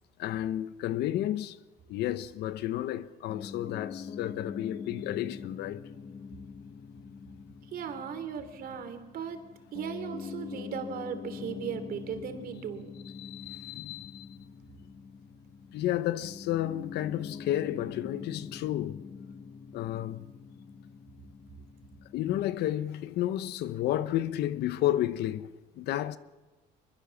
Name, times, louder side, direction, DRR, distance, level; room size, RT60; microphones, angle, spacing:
voice 1, 0.2-1.6 1.9-5.8 13.2-14.3 15.7-19.0 19.7-20.3 22.1-26.2, left 13 dB, 75° left, 1.1 m, -31 dB
Piano, 3.3-22.7, left 6 dB, 40° left, 1.5 m, -44 dB
voice 2, 7.7-9.4 9.7-12.9, right 7 dB, 60° right, 3.2 m, -37 dB
24.0 x 22.0 x 7.2 m
cardioid pair, 110°, 17 cm